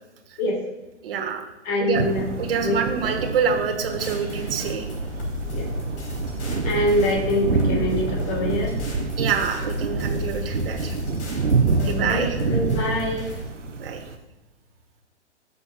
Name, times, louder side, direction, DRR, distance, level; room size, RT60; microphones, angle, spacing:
voice 1, 1.0-1.5 1.8-2.0 2.4-4.9 9.2-11.0 11.8-12.4 13.8-14.0, right 6 dB, 50° right, 3 dB, 1.3 m, -26 dB
voice 2, 1.7-2.8 5.5-5.7 6.6-8.8 10.2-10.4 11.8-13.3, left 1 dB, 30° left, 1 dB, 2.2 m, -25 dB
sound 1, 1.9-14.2, right 4 dB, 85° right, 1.0 m, -27 dB
sound 2, 3.9-13.5, left 2 dB, 65° left, 2.8 m, -34 dB
14.5 x 6.8 x 2.2 m, 1.1 s
figure-of-eight pair, 130°, 35 cm